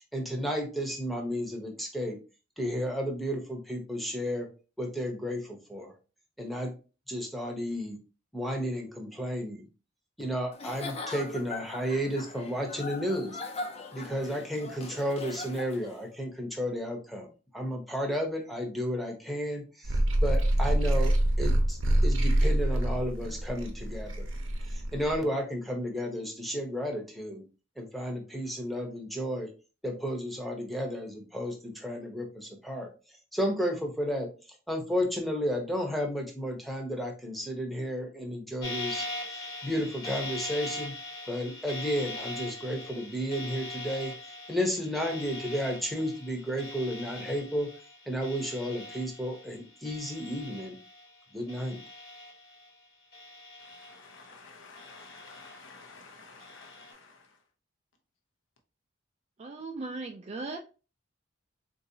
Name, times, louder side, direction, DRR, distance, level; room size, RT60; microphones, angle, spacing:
voice 1, 0.0-2.2 2.6-4.5 4.8-5.9 6.4-6.7 7.1-8.0 8.3-9.6 10.2-13.4 13.9-17.3 17.5-24.2 24.7-27.4 27.8-29.5 29.8-32.9 33.3-34.3 34.7-39.1 39.6-40.9 41.3-44.1 44.5-47.7 48.1-50.7 51.3-51.8, equal, ahead, 0 dB, 0.7 m, -32 dB
Giggle / Chuckle chortle, 10.5-16.0, left 3 dB, 30° left, 0.5 m, -40 dB
sound 1, 19.8-25.2, right 1 dB, 90° right, 0.7 m, -26 dB
sound 2, 38.6-51.2 51.5-52.7 53.1-54.3 54.8-55.8 56.4-56.9, left 2 dB, 55° left, 1.3 m, -41 dB
voice 2, 53.6-57.4, left 4 dB, 75° left, 3 dB, 0.7 m, -51 dB
voice 3, 59.4-60.6, right 3 dB, 30° right, 3 dB, 0.3 m, -37 dB
3.9 x 2.6 x 2.7 m, 0.34 s
head